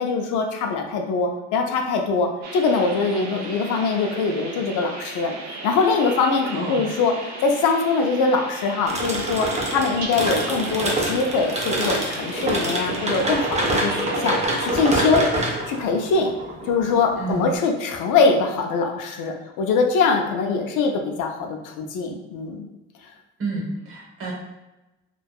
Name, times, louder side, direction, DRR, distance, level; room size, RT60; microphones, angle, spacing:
voice 1, 0.0-7.1 7.4-15.3 15.7-16.3 16.7-22.7, left 4 dB, 85° left, 3 dB, 0.5 m, -23 dB
sound 1, 2.4-14.5, right 3 dB, 65° right, 0.5 m, -36 dB
voice 2, 6.5-6.8 17.2-17.5 23.4-24.3, right 3 dB, 45° right, -3 dB, 0.9 m, -29 dB
sound 2, 8.9-17.5, right 1 dB, 20° right, 0.6 m, -26 dB
2.6 x 2.3 x 2.2 m, 1.0 s
cardioid pair, 90°, 30 cm